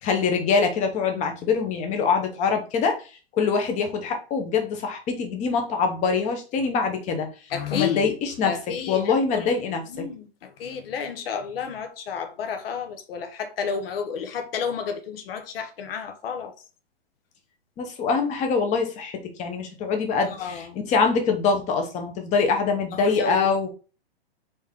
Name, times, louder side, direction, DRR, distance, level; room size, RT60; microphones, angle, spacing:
voice 1, 0.0-7.3 7.7-8.6 8.9-10.1 17.8-23.7, left 5 dB, 20° left, 1.0 m, -24 dB
voice 2, 7.5-8.1 8.4-9.5 9.9-16.5 20.2-20.8 22.9-23.5, left 6 dB, 60° left, 1.0 m, -31 dB
4.1 x 3.5 x 3.6 m
hypercardioid pair, 140°, 32 cm